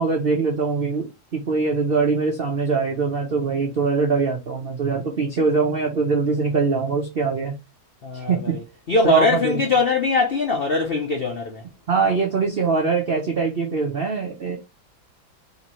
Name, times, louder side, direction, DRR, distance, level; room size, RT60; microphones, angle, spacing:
voice 1, 0.0-7.6 8.1-8.6 9.0-9.6 11.9-14.6, right 4 dB, 65° right, 0.5 m, -22 dB
voice 2, 8.0-8.6 8.9-11.6, left 3 dB, 80° left, 0.5 m, -21 dB
4.2 x 3.1 x 3.0 m
omnidirectional pair, 2.1 m